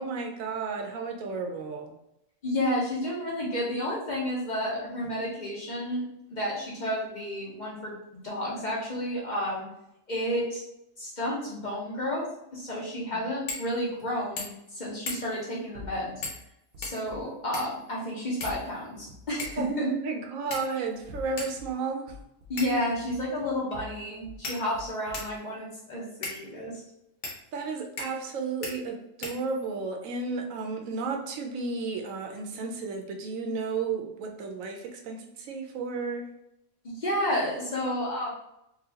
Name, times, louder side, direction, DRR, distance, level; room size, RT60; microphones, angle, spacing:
voice 1, 0.0-1.9 13.1-13.3 19.6-22.2 27.5-36.3, right 4 dB, 80° right, 3 dB, 1.0 m, -33 dB
voice 2, 2.4-6.0 6.3-9.7 10.1-10.6 11.0-16.2 16.8-19.9 22.5-26.8 36.8-38.3, left 1 dB, 40° left, -5 dB, 0.8 m, -31 dB
sound 1, 13.5-13.7 14.0-14.1 14.4-14.7 15.1-15.4 16.2-16.5 16.8-17.8 18.4-19.0 19.4-19.7 20.5-20.9 21.4-21.5 22.6-22.9 23.7-23.8 24.4-25.4 26.2-26.4 27.2-27.4 28.0-28.3 28.6-28.7 29.2-29.8, left 3 dB, 65° left, 1.1 m, -37 dB
sound 2, 15.7-17.3 18.4-19.7 20.9-21.7 22.1-24.4 24.7-25.4, left 2 dB, 60° right, 0.7 m, -46 dB
3.9 x 2.3 x 2.8 m, 0.82 s
omnidirectional pair, 1.4 m